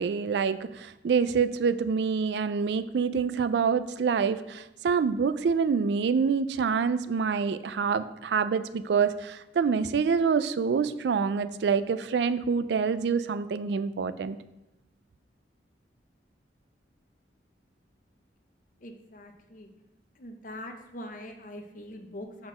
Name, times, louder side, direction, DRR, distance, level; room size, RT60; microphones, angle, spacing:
voice 1, 0.0-14.4, right 5 dB, 65° right, 13 dB, 0.3 m, -26 dB
voice 2, 18.8-19.7 20.2-22.5, left 1 dB, 45° left, 5 dB, 0.8 m, -43 dB
6.0 x 4.3 x 5.7 m, 0.96 s
head